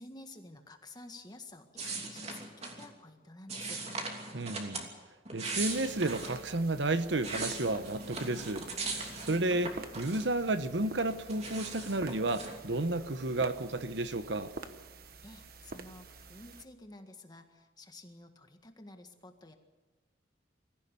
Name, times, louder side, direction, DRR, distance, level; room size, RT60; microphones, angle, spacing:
voice 1, 0.0-3.8 15.2-19.5, left 2 dB, 20° left, 1.8 m, -51 dB
sound 1, 1.8-2.9 3.5-4.9 5.2-6.4 6.9-10.5 10.8-12.6, right 3 dB, 35° right, 2.9 m, -39 dB
voice 2, 4.3-4.8 5.3-14.5, right 2 dB, 75° right, 1.1 m, -32 dB
sound 2, 5.6-16.6, right 3 dB, 55° right, 1.2 m, -49 dB
23.0 x 15.0 x 8.4 m
head